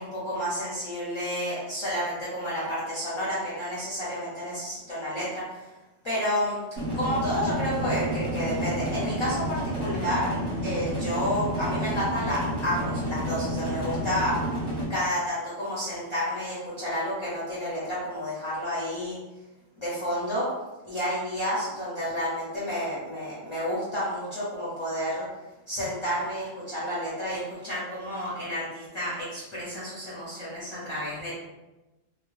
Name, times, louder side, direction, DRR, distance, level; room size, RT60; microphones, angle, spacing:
voice 1, 0.0-5.7 6.0-6.7 6.9-14.4 14.9-19.2 19.8-20.5 20.8-25.3 25.7-31.3, equal, 30° left, -9 dB, 0.7 m, -30 dB
sound 1, 6.8-14.8, equal, 25° right, 0.8 m, -30 dB
2.3 x 2.2 x 3.1 m, 1.1 s
omnidirectional pair, 1.3 m